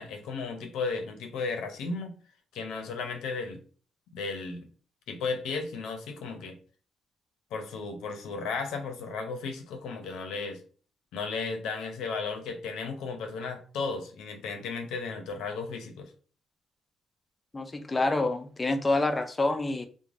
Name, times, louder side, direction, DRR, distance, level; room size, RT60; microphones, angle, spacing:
voice 1, 0.0-2.1 2.5-3.6 4.1-4.7 5.1-6.6 7.5-10.6 11.1-16.1, left 4 dB, 85° left, 0.5 m, -34 dB
voice 2, 17.5-19.9, left 2 dB, 20° left, 0.3 m, -27 dB
3.1 x 2.1 x 2.5 m
cardioid pair, 90°, 0 cm